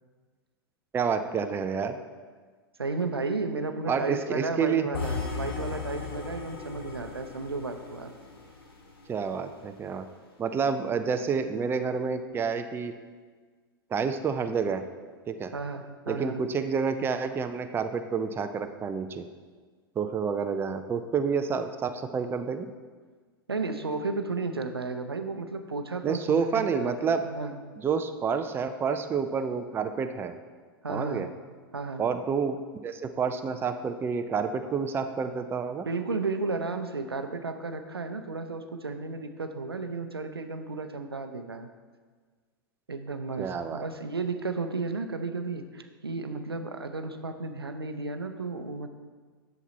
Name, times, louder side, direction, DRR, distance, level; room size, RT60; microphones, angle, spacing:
voice 1, 0.9-2.0 3.9-4.9 9.1-10.1 10.4-12.9 13.9-14.8 15.3-15.5 16.1-19.3 20.0-22.7 26.0-27.2 27.8-30.4 30.9-31.3 32.0-32.6 32.8-35.9 43.4-43.8, right 6 dB, 20° right, 8 dB, 0.5 m, -29 dB
voice 2, 2.8-8.1 15.5-16.4 23.5-27.6 30.8-31.3 31.7-32.0 35.8-41.7 42.9-48.9, right 3 dB, 85° right, 7 dB, 0.6 m, -33 dB
sound 1, 4.9-9.1, left 4 dB, 75° left, 1.6 m, -36 dB
8.2 x 7.0 x 4.2 m, 1.5 s
figure-of-eight pair, 95°, 13 cm